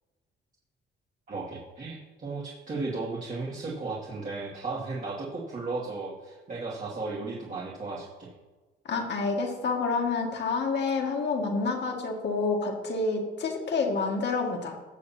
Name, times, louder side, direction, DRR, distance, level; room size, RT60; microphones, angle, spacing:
voice 1, 1.3-8.3, right 3 dB, 40° right, -6 dB, 2.3 m, -35 dB
voice 2, 8.9-14.8, left 4 dB, 60° left, 2 dB, 2.1 m, -28 dB
18.5 x 6.7 x 2.9 m, 1.2 s
cardioid pair, 90°, 20 cm